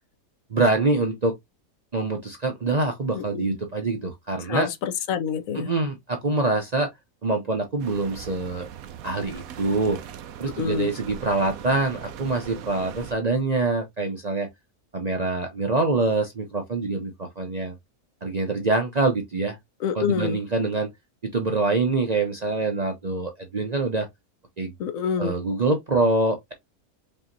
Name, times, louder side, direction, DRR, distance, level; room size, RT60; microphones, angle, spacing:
voice 1, 0.5-1.3 1.9-4.7 5.5-6.9 7.2-8.7 9.0-10.0 10.4-14.5 14.9-17.8 18.2-19.6 19.9-20.9 21.2-24.1 24.6-24.7 25.2-26.5, right 3 dB, 40° right, 0.6 m, -25 dB
voice 2, 3.1-3.6 4.5-5.7 10.6-10.9 19.8-20.4 24.8-25.4, left 7 dB, 70° left, 1.1 m, -27 dB
sound 1, 7.8-13.1, right 9 dB, 80° right, 1.1 m, -40 dB
5.4 x 2.8 x 2.6 m
omnidirectional pair, 1.5 m